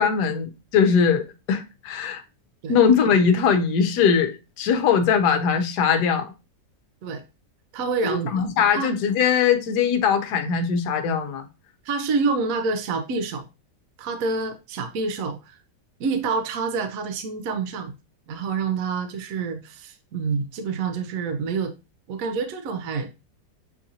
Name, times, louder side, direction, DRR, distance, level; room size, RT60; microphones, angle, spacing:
voice 1, 0.0-2.2 2.7-6.3 8.0-11.4, left 6 dB, 75° left, 1.3 m, -21 dB
voice 2, 7.7-8.4 8.7-8.9 11.8-13.5 14.0-15.6 16.0-17.9 18.3-21.7 22.1-23.1, right 4 dB, 65° right, 0.9 m, -27 dB
7.1 x 2.6 x 2.7 m
omnidirectional pair, 1.8 m